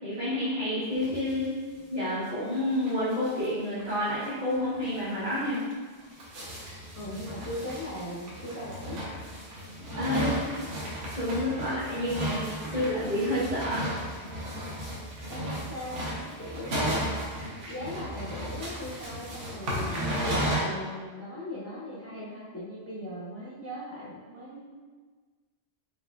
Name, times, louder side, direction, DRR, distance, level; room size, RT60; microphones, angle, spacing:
voice 1, 0.0-1.5 1.9-5.6 9.9-10.3 11.1-13.9, left 1 dB, 45° right, -14 dB, 1.7 m, -29 dB
sound 1, 1.0-1.5 1.8-1.9 2.1-2.2 2.6-2.7 2.9-3.5 3.8-3.9 4.2-4.3 4.8-5.0 5.5-20.6, right 1 dB, 85° right, 1.2 m, -34 dB
voice 2, 6.9-9.0 10.1-10.7 15.3-17.2 17.7-24.7, left 1 dB, 20° left, -7 dB, 0.4 m, -39 dB
4.7 x 3.3 x 2.3 m, 1.5 s
omnidirectional pair, 1.2 m